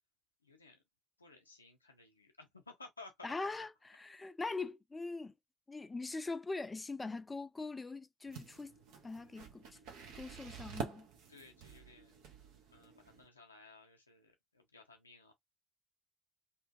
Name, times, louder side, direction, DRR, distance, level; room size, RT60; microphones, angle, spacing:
voice 1, 0.4-0.8 1.2-3.6 11.3-12.2 12.7-15.3, left 3 dB, 90° left, 0.5 m, -57 dB
voice 2, 3.2-5.3 5.7-8.8 9.0-9.8 10.1-11.1, left 3 dB, 25° left, 0.4 m, -42 dB
sound 1, 8.3-13.2, right 6 dB, 70° right, 0.7 m, -48 dB
2.7 x 2.5 x 2.3 m
figure-of-eight pair, 45°, 0 cm